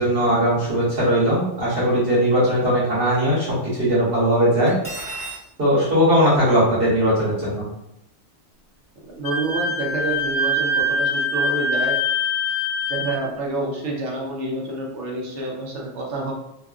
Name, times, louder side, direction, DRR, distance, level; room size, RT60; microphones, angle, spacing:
voice 1, 0.0-4.8 5.6-7.6, equal, 55° right, -8 dB, 1.3 m, -19 dB
Cutlery silverware, 4.7-5.4, right 2 dB, 25° right, 0.6 m, -33 dB
voice 2, 9.1-12.0 12.9-16.3, right 2 dB, 90° right, -1 dB, 1.0 m, -28 dB
Wind instrument woodwind instrument, 9.2-13.2, left 1 dB, 65° left, 0.7 m, -23 dB
2.5 x 2.5 x 2.3 m, 0.82 s
omnidirectional pair, 1.2 m